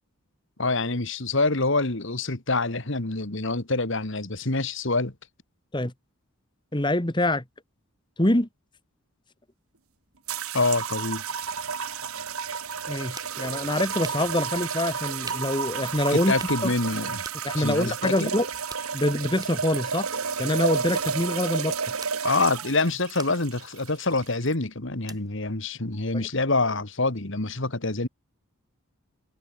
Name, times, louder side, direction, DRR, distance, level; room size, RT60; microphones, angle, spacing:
voice 1, 0.6-5.1 10.5-11.2 16.1-17.2 17.6-18.3 22.2-28.1, left 3 dB, 60° left, 2.0 m, -26 dB
voice 2, 6.7-7.4 8.2-8.5 12.9-16.3 16.6-16.7 17.4-18.5 18.9-20.1 20.4-21.8 26.1-26.2, left 1 dB, 20° left, 1.7 m, -25 dB
sound 1, 10.3-24.5, right 6 dB, 85° right, 2.0 m, -31 dB
sound 2, 23.1-26.4, right 4 dB, 15° right, 7.5 m, -49 dB
head